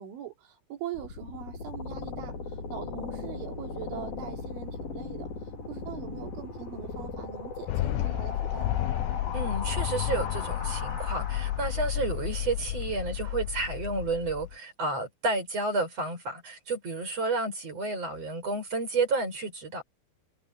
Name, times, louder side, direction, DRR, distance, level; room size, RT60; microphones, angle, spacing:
voice 1, 0.0-5.3 5.7-8.7, right 10 dB, 80° right, 5.7 m, -42 dB
sound 1, 0.9-11.9, left 4 dB, 50° left, 6.9 m, -38 dB
sound 2, 7.7-14.6, left 14 dB, 80° left, 2.9 m, -31 dB
voice 2, 9.3-19.8, right 3 dB, 30° right, 7.4 m, -31 dB
omnidirectional pair, 5.4 m